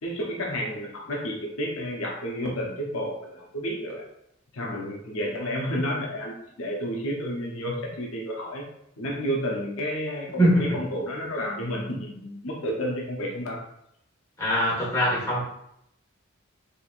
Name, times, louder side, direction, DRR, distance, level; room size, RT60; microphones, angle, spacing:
voice 1, 0.0-4.0 4.5-8.6 9.0-13.6, equal, 85° left, -1 dB, 0.8 m, -31 dB
voice 2, 14.4-15.4, equal, 15° left, -7 dB, 1.4 m, -22 dB
4.3 x 2.9 x 2.5 m, 0.77 s
head